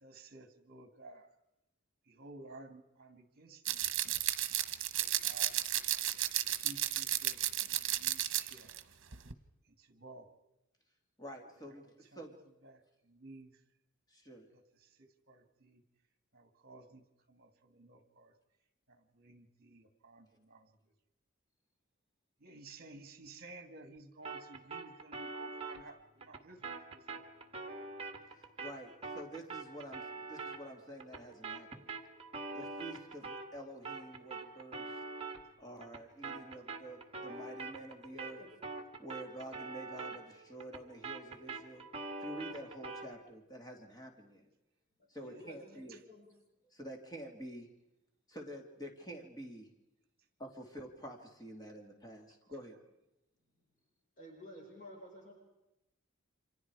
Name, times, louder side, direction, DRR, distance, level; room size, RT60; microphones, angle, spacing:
voice 1, 0.0-1.3 2.1-3.9 5.0-5.6 6.5-8.8 9.8-10.3 11.8-12.2 12.6-13.6 14.5-15.8 16.3-18.3 18.9-20.7 22.4-27.2 45.3-45.4 45.9-46.0, right 2 dB, 50° right, 8 dB, 2.2 m, -54 dB
sound 1, 3.7-8.8 9.1-9.3, right 13 dB, 65° right, 1.2 m, -33 dB
voice 2, 11.2-12.4 14.1-14.5 28.3-32.0 32.5-35.0 35.6-38.4 39.0-41.8 42.2-44.5 45.1-46.0 46.7-47.7 48.3-49.7 50.4-52.8, right 1 dB, 20° left, 2 dB, 2.6 m, -48 dB
sound 2, 24.2-33.6 33.8-43.1, right 3 dB, 30° right, 2.0 m, -45 dB
voice 3, 37.1-37.5 38.3-38.5 45.2-46.3 54.2-55.3, left 1 dB, 40° left, -1 dB, 5.5 m, -52 dB
29.5 x 26.0 x 4.8 m, 0.91 s
head